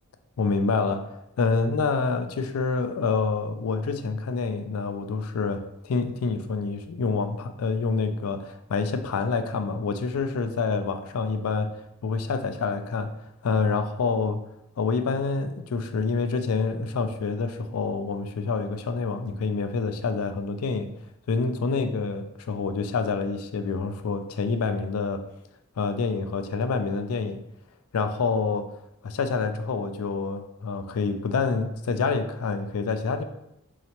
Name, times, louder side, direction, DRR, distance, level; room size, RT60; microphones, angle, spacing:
voice 1, 0.4-1.1 1.4-11.7 12.0-13.1 13.4-14.4 14.8-20.9 21.3-25.2 25.8-27.4 27.9-28.7 29.0-33.2, left 4 dB, 80° left, 8 dB, 0.4 m, -27 dB
4.2 x 2.8 x 2.8 m, 0.82 s
head